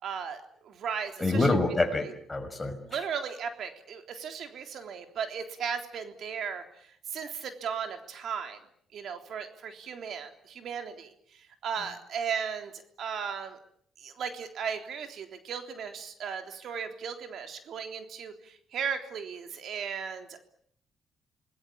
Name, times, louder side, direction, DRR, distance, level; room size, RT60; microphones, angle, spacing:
voice 1, 0.0-1.5 2.9-8.6 8.9-13.6 14.0-20.4, right 7 dB, 65° right, 6 dB, 3.6 m, -36 dB
voice 2, 1.2-3.0, left 2 dB, 15° left, 6 dB, 5.9 m, -27 dB
27.5 x 20.5 x 8.7 m, 0.63 s
cardioid pair, 90°, 0 cm